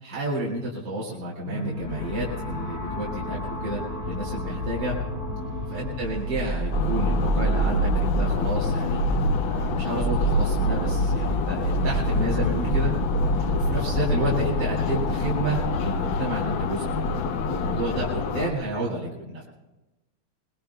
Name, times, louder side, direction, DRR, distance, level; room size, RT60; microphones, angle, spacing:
voice 1, 0.0-5.0 5.7-9.0 9.4-12.9 13.5-17.2 17.5-19.4, right 2 dB, 55° right, -5 dB, 3.1 m, -31 dB
sound 1, 1.4-7.4, left 2 dB, 20° right, 6.7 m, -33 dB
sound 2, 5.9-8.6 8.9-9.5 9.9-14.1, right 3 dB, 10° left, 1.7 m, -27 dB
sound 3, 6.7-18.5, left 4 dB, 70° left, 1.5 m, -26 dB
voice 2, 12.1-12.4 17.1-17.5, equal, 80° right, -2 dB, 5.3 m, -42 dB
23.0 x 20.5 x 2.3 m, 1.0 s
omnidirectional pair, 2.4 m